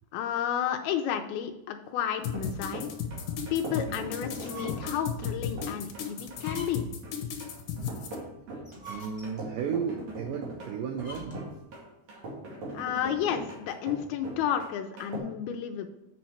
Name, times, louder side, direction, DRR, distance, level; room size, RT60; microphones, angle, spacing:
voice 1, 0.1-2.9 3.5-6.9 12.7-15.9, left 9 dB, 85° left, 5 dB, 2.3 m, -31 dB
sound 1, 2.2-8.2, left 8 dB, 65° left, 2.2 m, -34 dB
sound 2, 2.2-15.2, right 1 dB, 45° right, 2.8 m, -41 dB
sound 3, 4.4-5.0 5.5-5.6 6.3-7.0 8.5-9.5 10.9-11.6, equal, 10° right, 1.6 m, -44 dB
voice 2, 8.9-11.4, right 7 dB, 85° right, 3 dB, 1.9 m, -34 dB
7.8 x 6.3 x 4.4 m, 0.90 s
omnidirectional pair, 4.9 m